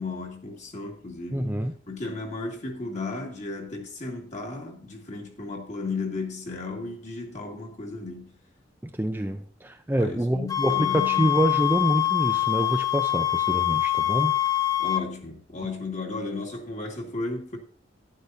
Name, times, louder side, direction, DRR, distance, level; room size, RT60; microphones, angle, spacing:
voice 1, 0.0-1.6 1.9-8.3 10.0-11.4 14.8-17.6, left 3 dB, 40° left, 2.1 m, -34 dB
voice 2, 1.3-1.7 9.0-14.4, right 1 dB, 10° right, 0.6 m, -26 dB
sound 1, 10.5-15.1, left 14 dB, 20° left, 0.8 m, -24 dB
11.5 x 10.5 x 2.7 m
head